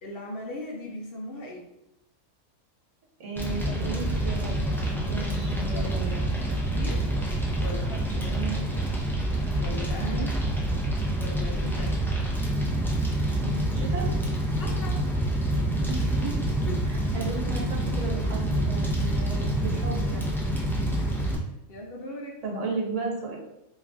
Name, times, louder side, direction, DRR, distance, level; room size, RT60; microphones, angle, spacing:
voice 1, 0.0-1.6 5.0-7.1 7.6-8.8 9.6-10.5 11.2-12.0 14.6-15.0 16.6-16.9 20.8-21.0 21.3-22.4, left 1 dB, 60° left, -1 dB, 0.7 m, -40 dB
voice 2, 3.2-6.3 8.3-8.6 9.9-10.3 13.3-14.1 15.9-16.3 16.9-20.9 22.4-23.4, right 3 dB, 75° right, -2 dB, 1.2 m, -35 dB
Fire, 3.4-21.4, right 1 dB, 5° left, 0.3 m, -27 dB
3.1 x 2.4 x 3.5 m, 0.88 s
omnidirectional pair, 1.3 m